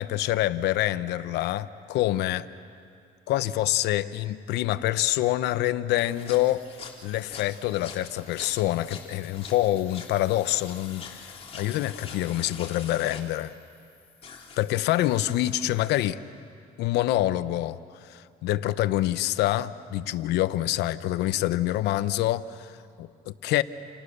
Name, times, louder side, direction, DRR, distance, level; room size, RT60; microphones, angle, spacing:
voice 1, 0.0-2.5 3.3-6.6 7.0-13.5 14.6-16.2 16.8-23.6, left 14 dB, 85° left, 14 dB, 0.9 m, -26 dB
sound 1, 6.0-16.0, left 5 dB, 35° left, 3.3 m, -45 dB
29.0 x 29.0 x 6.7 m, 2.4 s
cardioid pair, 110°, 17 cm